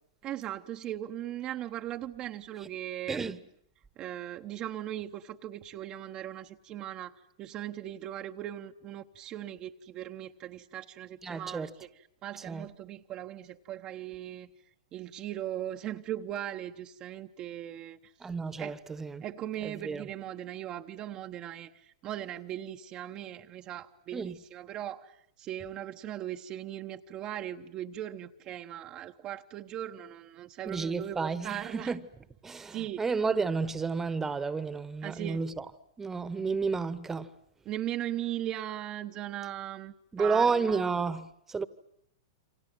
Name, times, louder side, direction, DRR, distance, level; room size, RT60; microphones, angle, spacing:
voice 1, 0.2-3.4 4.0-7.1 7.4-11.9 12.2-14.5 14.9-18.0 18.6-18.8 19.2-31.9 32.7-33.0 35.0-35.4 37.7-40.9, right 12 dB, 35° right, 1.0 m, -39 dB
voice 2, 3.1-3.4 11.2-11.7 12.5-12.7 18.2-19.2 19.6-20.0 24.1-24.4 30.6-32.0 32.4-35.6 36.0-37.3 40.1-41.7, right 4 dB, 15° right, 1.3 m, -31 dB
29.0 x 25.5 x 7.9 m
hypercardioid pair, 110°, 2 cm